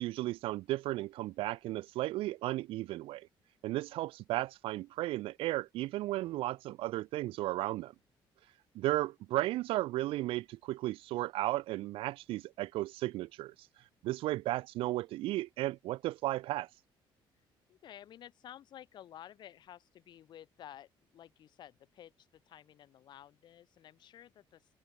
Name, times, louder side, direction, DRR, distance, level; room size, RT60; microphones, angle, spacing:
voice 1, 0.0-3.3 3.6-7.9 8.7-13.5 14.0-16.7, right 17 dB, 80° right, 0.4 m, -34 dB
voice 2, 17.4-24.7, left 11 dB, 55° left, 5.0 m, -53 dB
open air
cardioid pair, 160°, 9 cm